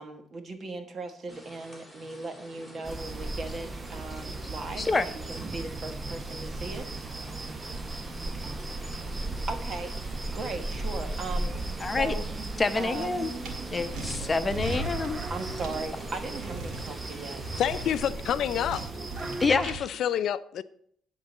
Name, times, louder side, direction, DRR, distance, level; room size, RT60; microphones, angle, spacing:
voice 1, 0.0-6.9 9.5-12.2 12.8-13.3 15.3-17.8, right 3 dB, 50° right, 1.5 m, -38 dB
sound 1, 1.3-17.9, equal, 5° right, 3.1 m, -47 dB
sound 2, 2.8-19.5, right 2 dB, 30° right, 0.9 m, -36 dB
voice 2, 11.8-12.1 12.6-13.3 13.7-15.2 19.4-19.7, left 3 dB, 30° left, 0.8 m, -27 dB
sound 3, 13.4-13.5 13.9-15.8 16.4-16.9 17.4-18.0 18.5-19.8, right 3 dB, 90° right, 1.8 m, -37 dB
voice 3, 17.6-18.9 19.2-20.6, left 10 dB, 75° left, 0.4 m, -29 dB
10.5 x 4.0 x 7.1 m
cardioid pair, 90°, 0 cm